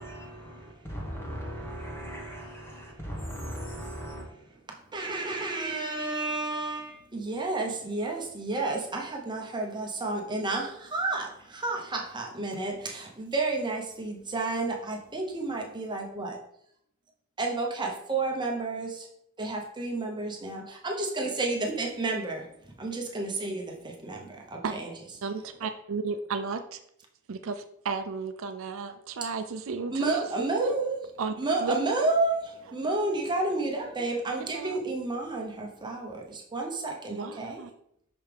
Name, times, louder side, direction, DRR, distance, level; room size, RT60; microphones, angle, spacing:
voice 1, 0.0-4.2, equal, 10° left, 1.4 m, -38 dB
voice 2, 4.9-16.4 17.4-19.1 19.4-22.5 22.8-24.9 29.9-31.0 31.4-37.6, right 3 dB, 20° right, 0.9 m, -31 dB
voice 3, 25.2-26.8 27.3-30.8 31.2-31.8 34.0-34.1 34.4-34.8 37.1-37.7, right 4 dB, 65° right, 0.4 m, -34 dB
5.9 x 5.5 x 3.4 m
head